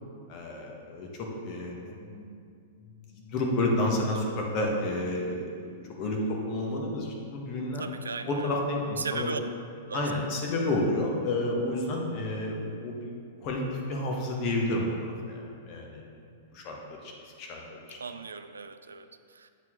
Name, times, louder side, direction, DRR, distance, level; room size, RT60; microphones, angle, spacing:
voice 1, 0.3-2.2 3.1-7.8 8.3-9.4 9.9-13.1 13.4-13.6 13.9-14.9 15.3-16.0 16.5-17.1 17.4-17.6 17.9-18.0, left 1 dB, 40° left, -1 dB, 1.3 m, -30 dB
voice 2, 7.8-8.5 9.0-9.4 9.9-10.1 18.0-19.5, right 5 dB, 85° right, 10 dB, 0.3 m, -37 dB
8.1 x 4.6 x 3.8 m, 2.3 s
hypercardioid pair, 105°, 0 cm